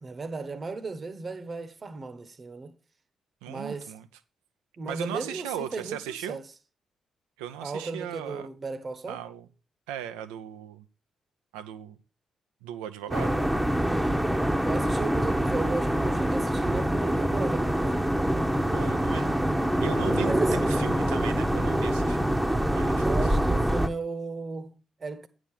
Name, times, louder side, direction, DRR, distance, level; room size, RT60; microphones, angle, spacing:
voice 1, 0.0-2.7 3.5-3.9 4.8-6.4 7.6-9.2 13.1-13.6 14.6-18.0 20.2-20.7 23.0-25.3, right 3 dB, 45° right, 1.1 m, -35 dB
voice 2, 3.4-4.1 4.9-6.4 7.4-8.5 9.1-9.5 9.9-10.9 11.5-12.0 12.6-13.4 18.7-19.5 19.8-22.4 22.7-23.3, right 10 dB, 85° right, 0.6 m, -38 dB
sound 1, 13.1-23.9, right 1 dB, 10° right, 0.9 m, -25 dB
9.0 x 5.0 x 5.7 m
hypercardioid pair, 45°, 0 cm